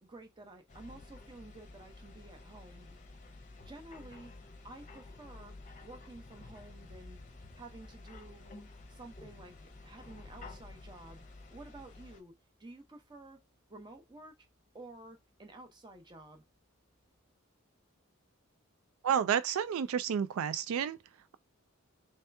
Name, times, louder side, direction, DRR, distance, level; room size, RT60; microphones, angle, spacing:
voice 1, 0.0-2.9 3.6-4.3 4.6-5.5 5.8-7.2 7.6-8.6 8.9-9.5 9.8-11.2 11.5-12.3 12.6-13.4 13.7-14.3 14.7-16.4, right 2 dB, 20° right, 0.8 m, -51 dB
sound 1, 0.7-12.2, left 2 dB, 35° left, 0.7 m, -51 dB
voice 2, 19.0-21.0, right 8 dB, 80° right, 0.3 m, -30 dB
3.2 x 2.9 x 3.4 m
head